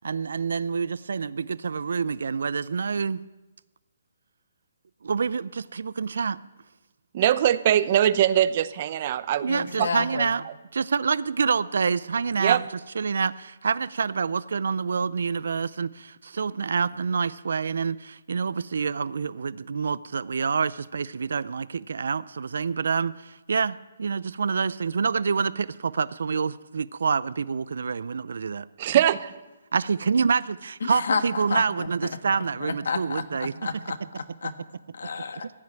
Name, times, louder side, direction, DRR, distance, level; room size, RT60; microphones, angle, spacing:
voice 1, 0.0-3.2 5.0-6.4 9.4-10.4 10.7-12.6 13.0-28.7 29.7-33.7 34.0-34.1 35.4-35.5, right 5 dB, 75° right, 19 dB, 0.4 m, -27 dB
voice 2, 7.1-9.5 9.8-9.9 12.4-12.6 28.8-29.3, right 11 dB, 40° right, 16 dB, 0.7 m, -22 dB
voice 3, 9.5-10.3 30.8-31.2 31.5-31.9 32.6-34.5 34.9-35.5, left 5 dB, 75° left, 9 dB, 1.5 m, -30 dB
15.0 x 9.4 x 8.9 m, 1.1 s
hypercardioid pair, 155°, 0 cm